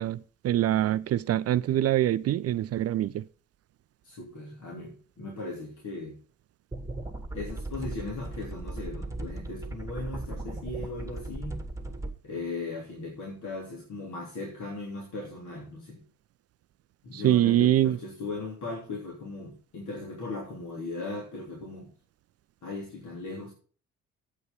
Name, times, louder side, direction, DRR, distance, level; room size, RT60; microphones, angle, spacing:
voice 1, 0.0-3.2 17.1-18.0, right 13 dB, 40° right, 0.5 m, -24 dB
voice 2, 4.0-6.2 7.3-11.6 12.2-16.0 17.0-21.9 22.6-23.5, left 3 dB, 50° left, 3.7 m, -38 dB
sound 1, 6.7-12.1, right 2 dB, 5° right, 2.0 m, -37 dB
9.4 x 8.6 x 5.5 m
figure-of-eight pair, 45°, 39 cm